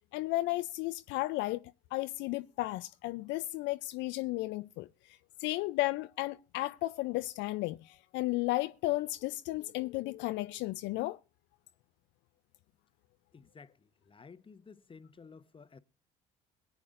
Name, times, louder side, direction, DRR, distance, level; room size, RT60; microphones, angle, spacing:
voice 1, 0.1-11.2, left 18 dB, 70° left, 0.5 m, -34 dB
voice 2, 13.3-15.8, left 5 dB, 25° left, 1.0 m, -54 dB
22.0 x 8.4 x 2.5 m
hypercardioid pair, 60°, 20 cm